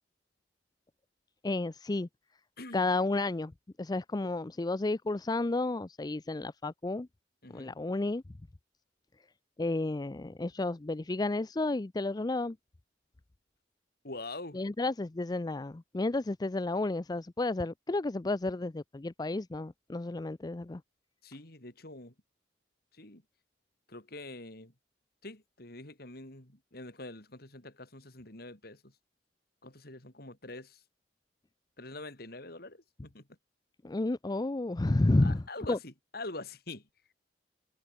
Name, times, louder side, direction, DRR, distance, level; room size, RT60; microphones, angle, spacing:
voice 1, 1.4-2.1 2.7-3.5 3.8-7.1 7.5-8.2 9.6-12.6 14.5-20.8 33.8-35.4 35.7-35.8, left 2 dB, 20° left, 0.5 m, -31 dB
voice 2, 2.6-2.9 7.4-7.8 14.0-14.6 21.2-22.1 22.9-23.2 23.9-24.7 25.2-28.9 29.6-30.8 31.8-33.3 35.2-36.8, left 2 dB, 60° left, 4.7 m, -45 dB
head